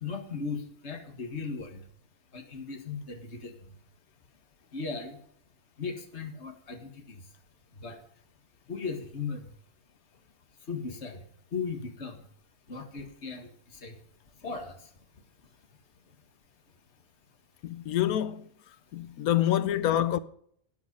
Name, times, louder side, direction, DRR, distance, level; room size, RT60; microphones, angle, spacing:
voice 1, 0.0-1.8 2.3-3.5 4.7-5.2 5.8-7.2 7.8-8.0 8.7-9.4 10.7-11.2 11.5-12.2 12.7-14.0 14.4-14.8, left 5 dB, 50° left, 2.1 m, -37 dB
voice 2, 17.6-18.5 18.9-20.2, left 12 dB, 85° left, 1.2 m, -26 dB
12.5 x 9.4 x 5.4 m
omnidirectional pair, 1.5 m